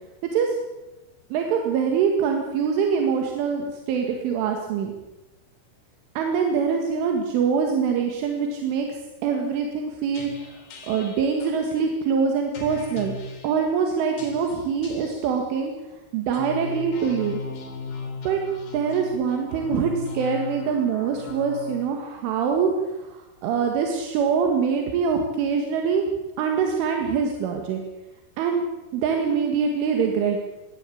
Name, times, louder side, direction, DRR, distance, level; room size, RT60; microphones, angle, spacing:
voice 1, 1.3-4.9 6.2-10.6 10.9-13.2 13.4-15.7 16.1-17.4 18.2-18.4 18.7-22.7 23.0-26.0 26.4-27.8 28.4-28.6 28.9-30.4, right 6 dB, 85° right, 2 dB, 4.4 m, -24 dB
sound 1, 10.1-11.6 12.5-13.6 14.2-15.4 16.2-21.8, left 5 dB, 65° left, 5.2 m, -37 dB
22.5 x 17.0 x 8.6 m, 1.1 s
omnidirectional pair, 5.4 m